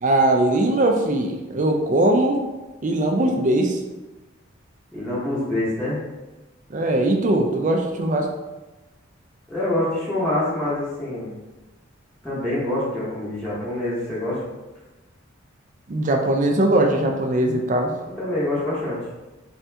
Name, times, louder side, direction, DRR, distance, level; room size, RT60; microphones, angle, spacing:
voice 1, 0.0-2.4 2.8-3.8 6.7-8.3 15.9-17.9, right 1 dB, 35° right, 3 dB, 0.4 m, -20 dB
voice 2, 4.9-6.0 9.5-11.3 12.2-14.4 18.1-19.0, left 1 dB, 5° left, -11 dB, 0.9 m, -26 dB
3.5 x 2.8 x 3.3 m, 1.1 s
head